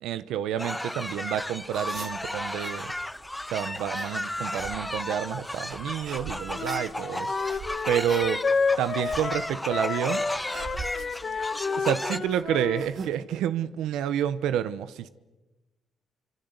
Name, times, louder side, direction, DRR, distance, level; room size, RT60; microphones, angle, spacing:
voice 1, 0.0-2.9 3.5-7.4 7.9-8.4 8.8-10.2 11.8-15.1, right 10 dB, 90° right, 13 dB, 1.0 m, -29 dB
sound 1, 0.6-12.2, left 1 dB, 10° left, 1.0 m, -34 dB
sound 2, 1.1-13.1, right 5 dB, 55° right, 2.5 m, -44 dB
Wind instrument woodwind instrument, 6.5-12.9, left 4 dB, 40° left, 1.7 m, -30 dB
27.0 x 26.0 x 8.2 m, 1.1 s
cardioid pair, 90°, 0 cm